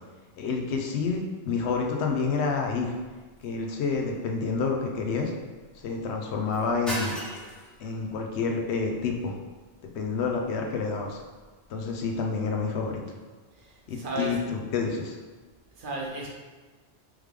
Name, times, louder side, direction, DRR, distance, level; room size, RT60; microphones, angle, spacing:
voice 1, 0.4-2.9 3.4-5.3 5.8-7.1 7.8-9.3 9.9-11.2 11.7-13.0 13.9-15.2, left 4 dB, 85° left, 2 dB, 0.9 m, -28 dB
sound 1, 3.2-12.2, equal, ahead, 0.6 m, -43 dB
voice 2, 13.6-14.3 15.8-16.3, right 2 dB, 55° right, -2 dB, 0.8 m, -34 dB
3.6 x 3.1 x 3.3 m, 1.3 s
omnidirectional pair, 1.1 m